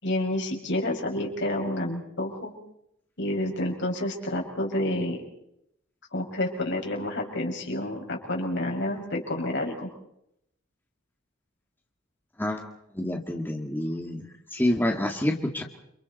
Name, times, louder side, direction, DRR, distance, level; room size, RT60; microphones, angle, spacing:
voice 1, 0.0-2.5 3.2-5.2 6.1-9.9, left 1 dB, 60° left, 1 dB, 6.2 m, -29 dB
voice 2, 12.9-15.6, left 1 dB, 10° left, 1 dB, 2.1 m, -28 dB
29.5 x 28.0 x 4.2 m, 0.78 s
head